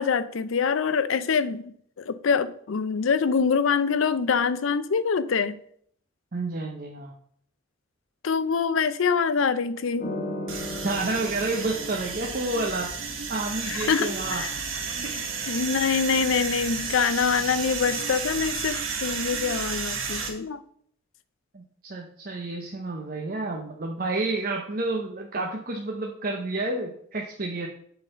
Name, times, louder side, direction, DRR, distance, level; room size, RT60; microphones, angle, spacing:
voice 1, 0.0-5.6 8.2-10.1 13.7-14.5 15.5-20.6, left 6 dB, 70° left, 0.5 m, -25 dB
voice 2, 6.3-7.1 10.8-12.9 13.3-14.5 15.0-15.2 21.5-27.7, right 2 dB, 45° right, 0.7 m, -30 dB
sound 1, 10.0-13.1 14.8-16.5, left 1 dB, 40° left, 1.0 m, -38 dB
sound 2, 10.5-20.3, right 5 dB, 75° right, 1.4 m, -32 dB
7.8 x 4.0 x 5.5 m
head